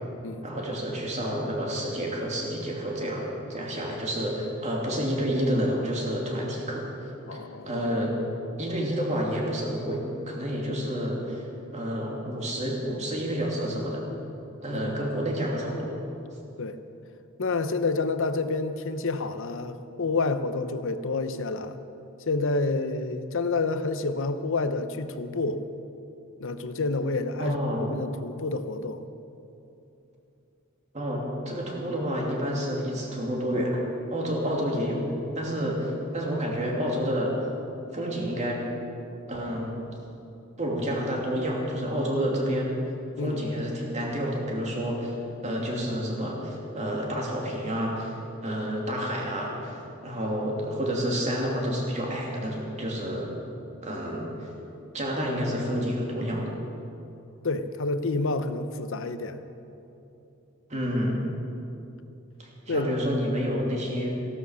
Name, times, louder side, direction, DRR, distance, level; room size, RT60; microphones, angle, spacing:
voice 1, 0.4-6.8 7.7-8.1 8.6-11.4 11.7-14.0 14.6-15.9 27.4-27.9 30.9-33.8 34.1-35.0 35.3-37.3 37.9-38.6 39.3-39.7 40.6-42.7 43.2-45.1 45.4-48.1 48.4-49.8 50.0-53.3 53.8-54.3 54.9-56.5 60.7-61.2 62.7-64.2, equal, 35° right, -2 dB, 2.8 m, -29 dB
voice 2, 7.3-7.7 14.7-14.9 16.6-16.8 17.4-21.8 22.3-25.6 26.4-27.6 27.9-29.0 43.2-43.4 57.4-59.4 62.7-62.9, left 3 dB, 65° left, 10 dB, 0.8 m, -28 dB
15.5 x 12.5 x 6.4 m, 2.8 s
head